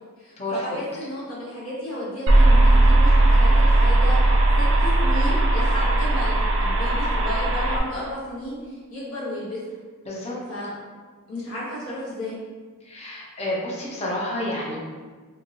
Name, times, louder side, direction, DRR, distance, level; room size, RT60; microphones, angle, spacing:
voice 1, 0.2-9.6 10.5-10.7 11.3-12.4, left 1 dB, 70° left, -7 dB, 1.1 m, -33 dB
sound 1, 2.3-7.8, right 2 dB, 65° right, 0.4 m, -17 dB
voice 2, 10.1-10.4 12.8-14.8, left 1 dB, 30° left, -4 dB, 0.5 m, -29 dB
2.7 x 2.6 x 2.8 m, 1.5 s
head